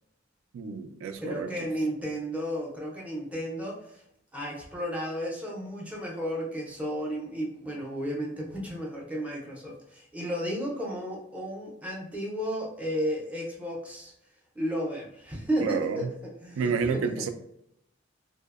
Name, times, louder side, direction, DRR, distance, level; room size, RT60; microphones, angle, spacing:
voice 1, 0.5-1.7 15.6-16.1 16.6-17.3, right 5 dB, 85° right, 9 dB, 0.3 m, -30 dB
voice 2, 1.2-4.0 4.3-14.1 14.6-17.3, equal, 5° right, -2 dB, 0.4 m, -33 dB
2.7 x 2.0 x 2.3 m, 0.77 s
head